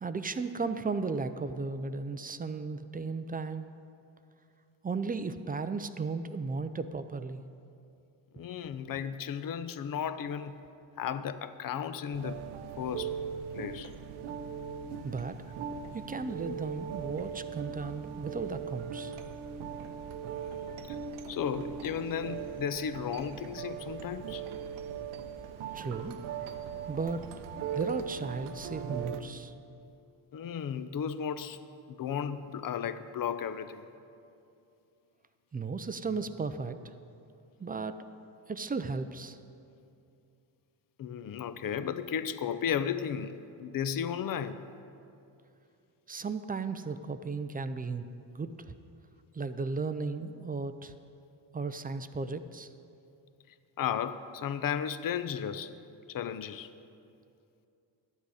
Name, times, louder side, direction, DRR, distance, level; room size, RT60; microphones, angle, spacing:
voice 1, 0.0-3.7 4.8-7.4 15.0-19.2 25.7-26.2 26.9-27.3 27.7-29.5 35.5-36.9 37.6-38.0 38.5-39.4 46.1-48.7 49.3-50.9 51.5-52.7, right 4 dB, 20° right, 10 dB, 0.4 m, -35 dB
voice 2, 8.3-10.5 11.0-12.4 12.8-13.1 13.5-13.9 16.5-16.6 21.3-24.4 30.3-31.6 31.9-33.9 41.0-43.3 43.6-44.6 53.8-55.7 56.1-56.7, left 8 dB, 45° left, 12 dB, 0.6 m, -34 dB
sound 1, 12.1-29.2, right 7 dB, 75° right, 0.8 m, -39 dB
11.5 x 8.2 x 4.9 m, 2.6 s
supercardioid pair, 70°, 49 cm